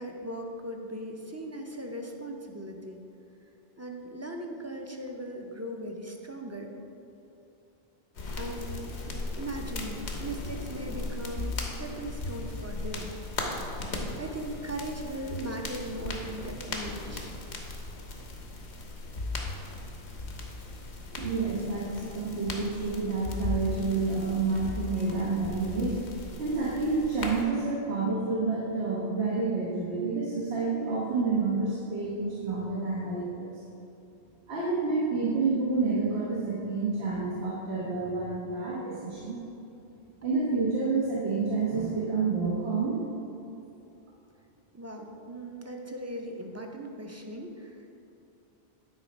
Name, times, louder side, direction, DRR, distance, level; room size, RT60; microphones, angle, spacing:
voice 1, 0.0-3.0 3.8-6.7 8.4-9.0 9.3-13.1 14.2-17.4 44.7-47.9, right 1 dB, 20° right, 2 dB, 0.5 m, -38 dB
sound 1, 8.1-27.4, left 2 dB, 85° left, 1.2 m, -37 dB
voice 2, 21.1-26.0 26.4-33.5 34.5-39.4 40.2-43.0, right 4 dB, 85° right, -6 dB, 1.5 m, -29 dB
9.7 x 4.2 x 5.2 m, 2.8 s
omnidirectional pair, 1.1 m